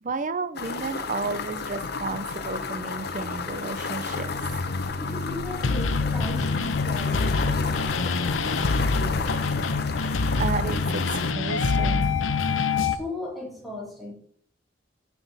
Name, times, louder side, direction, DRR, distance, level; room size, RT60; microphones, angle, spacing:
voice 1, 0.0-4.6 10.0-12.1, right 4 dB, 40° right, 14 dB, 0.6 m, -32 dB
sound 1, 0.6-11.3, left 4 dB, 55° left, 0.8 m, -32 dB
sound 2, 1.2-13.0, left 4 dB, 90° left, 0.7 m, -27 dB
voice 2, 5.0-9.5 12.8-14.1, left 2 dB, ahead, -4 dB, 3.1 m, -38 dB
15.0 x 6.0 x 4.1 m, 0.65 s
head